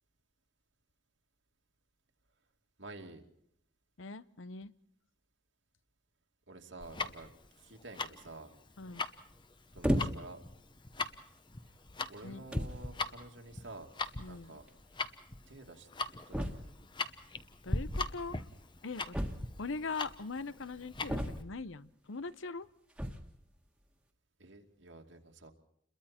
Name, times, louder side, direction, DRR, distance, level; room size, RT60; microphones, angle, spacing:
voice 1, 2.8-3.2 6.5-7.3 7.6-8.5 9.7-10.4 12.1-13.9 14.2-14.7 15.5-15.9 16.3-16.7 24.4-25.5, right 2 dB, 80° right, 2 dB, 2.6 m, -50 dB
voice 2, 4.0-4.7 8.8-9.0 12.2-12.5 14.2-14.6 17.6-18.4 18.8-19.2 19.6-22.7, left 4 dB, 90° left, 16 dB, 0.8 m, -41 dB
Tick-tock, 6.8-21.4, left 3 dB, 25° left, 0.9 m, -40 dB
sound 1, 9.8-10.4 11.2-11.4 12.2-12.3 12.5-12.8 14.0-14.1 14.4-14.5 14.7-14.8 16.3-16.9 19.1-19.8 21.1-21.7 22.9-23.4, equal, 5° right, 1.6 m, -34 dB
29.5 x 22.5 x 4.4 m, 0.70 s
head